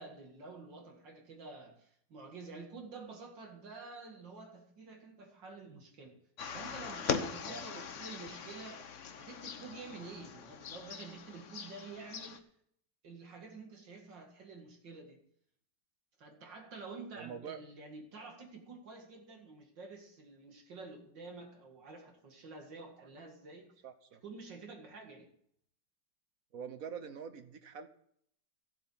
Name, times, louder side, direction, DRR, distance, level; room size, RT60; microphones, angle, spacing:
voice 1, 0.0-6.2 6.5-8.9 9.2-12.4 13.0-15.2 16.2-23.7 24.2-25.3, right 3 dB, 85° right, 2 dB, 2.8 m, -49 dB
sound 1, 6.4-12.4, left 6 dB, 50° left, 1.1 m, -41 dB
voice 2, 17.1-17.6 23.0-23.1 23.8-24.2 26.5-27.9, right 6 dB, 55° right, 9 dB, 1.2 m, -45 dB
14.5 x 7.8 x 5.7 m, 0.67 s
omnidirectional pair, 1.9 m